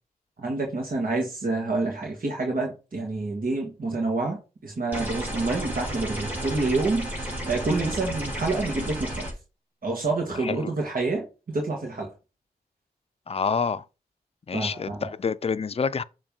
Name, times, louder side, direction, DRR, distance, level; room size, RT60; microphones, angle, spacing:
voice 1, 0.4-9.2 9.8-11.3 11.5-12.1 14.5-15.1, right 3 dB, 60° right, 1.6 m, -28 dB
sound 1, 4.9-9.3, right 1 dB, 10° right, 3.3 m, -32 dB
voice 2, 13.3-13.8 14.5-16.0, left 5 dB, 40° left, 0.5 m, -27 dB
6.9 x 3.1 x 5.3 m
cardioid pair, 45°, 16 cm